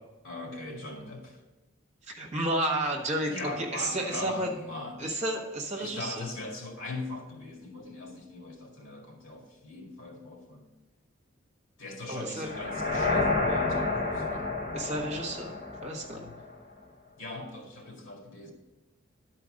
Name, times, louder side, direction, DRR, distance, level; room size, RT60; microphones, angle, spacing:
voice 1, 0.2-1.4 3.2-5.1 5.8-10.7 11.8-14.5 17.2-18.5, left 2 dB, 80° left, 1 dB, 2.2 m, -40 dB
voice 2, 2.0-4.5 5.0-6.3 12.1-12.5 14.7-15.5 15.8-16.3, right 1 dB, 35° right, 1 dB, 1.3 m, -31 dB
sound 1, 12.4-16.5, left 3 dB, 65° left, 2.6 m, -30 dB
11.0 x 4.5 x 6.4 m, 1.0 s
head